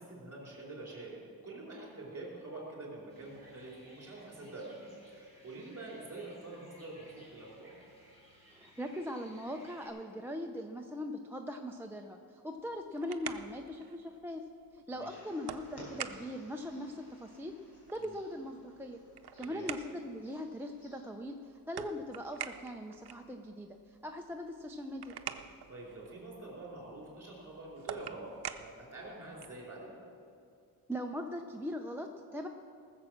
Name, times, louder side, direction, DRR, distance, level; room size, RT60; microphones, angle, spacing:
voice 1, 0.0-7.7 14.9-15.2 18.0-18.2 19.4-19.7 25.4-28.3 28.6-30.0, right 2 dB, 40° right, -3 dB, 4.3 m, -46 dB
sound 1, 3.1-9.9, equal, 15° left, 3.8 m, -60 dB
voice 2, 8.5-14.4 14.7-17.5 17.9-19.0 19.4-21.4 21.7-25.1 30.9-32.5, equal, 5° right, 3 dB, 0.5 m, -40 dB
sound 2, 12.6-29.7, right 9 dB, 85° right, 0.7 m, -48 dB
sound 3, 15.0-21.1, equal, 85° left, 4.2 m, -56 dB
19.0 x 7.3 x 6.4 m, 2.4 s
wide cardioid pair, 170°, 38 cm